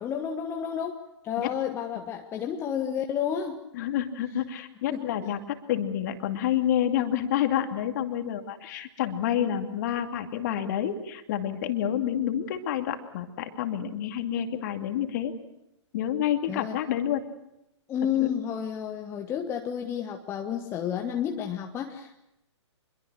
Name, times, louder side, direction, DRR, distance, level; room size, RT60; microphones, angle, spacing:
voice 1, 0.0-3.6 4.9-5.1 16.5-16.8 17.9-22.2, left 9 dB, 15° left, 3 dB, 1.3 m, -31 dB
voice 2, 3.7-15.3 15.9-17.2 18.2-18.3, left 10 dB, 40° left, 6 dB, 2.4 m, -28 dB
26.5 x 22.5 x 6.5 m, 0.85 s
figure-of-eight pair, 120°, 16 cm